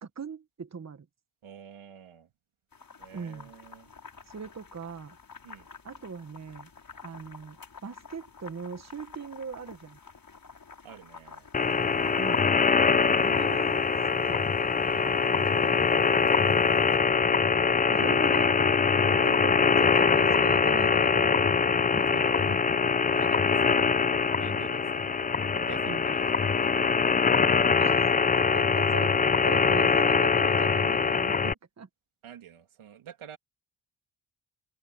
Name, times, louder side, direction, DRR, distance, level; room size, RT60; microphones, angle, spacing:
voice 1, 0.0-1.1 3.1-3.5 4.3-5.2 5.8-6.7 7.0-7.6 7.8-10.0 12.2-12.5 13.2-13.9 14.2-14.4 17.9-18.5 19.1-21.5 21.9-22.1 22.5-22.6 25.9-26.0 27.8-28.1 28.4-29.2 29.4-31.9, right 5 dB, 35° right, 1.3 m, -40 dB
voice 2, 1.4-2.3 3.0-3.9 5.4-5.7 10.8-11.5 14.8-17.0 18.9-19.3 22.1-22.6 23.1-24.0 24.4-25.2 25.5-27.0 32.2-33.4, right 9 dB, 85° right, 2.9 m, -48 dB
sound 1, 2.7-17.0, left 5 dB, 45° left, 5.7 m, -49 dB
sound 2, 11.5-31.5, left 5 dB, 20° left, 0.4 m, -23 dB
open air
cardioid pair, 85°, 48 cm